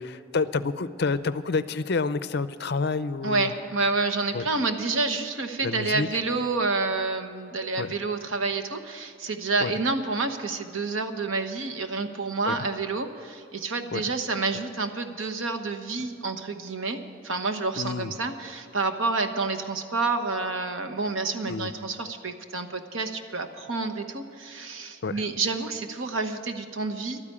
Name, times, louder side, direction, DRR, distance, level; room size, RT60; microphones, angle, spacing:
voice 1, 0.0-3.5 4.3-4.4 5.6-6.1 7.8-7.9 9.6-9.7 12.4-12.6 13.9-14.0 17.8-18.1 21.5-21.7 25.0-25.2, left 4 dB, 55° left, 14 dB, 0.5 m, -28 dB
voice 2, 3.2-17.0 17.2-27.2, right 3 dB, 90° right, 7 dB, 1.1 m, -29 dB
12.5 x 9.9 x 8.6 m, 2.6 s
head